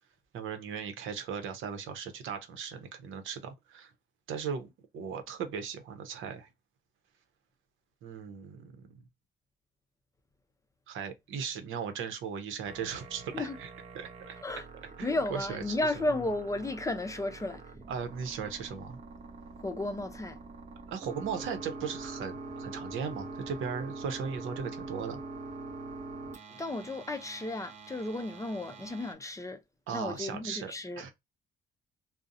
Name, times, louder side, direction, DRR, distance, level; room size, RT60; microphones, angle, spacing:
voice 1, 0.3-3.9 4.3-6.5 8.0-8.9 10.9-13.7 13.9-14.3 15.0-15.8 17.9-19.0 20.9-25.2 29.9-31.1, right 6 dB, 80° right, 0.7 m, -37 dB
sound 1, 12.6-29.1, right 3 dB, 35° right, 0.7 m, -45 dB
voice 2, 15.0-17.6 19.6-20.4 26.5-29.6 29.9-31.0, left 2 dB, 15° left, 0.4 m, -33 dB
2.6 x 2.0 x 2.5 m
cardioid pair, 90°, 20 cm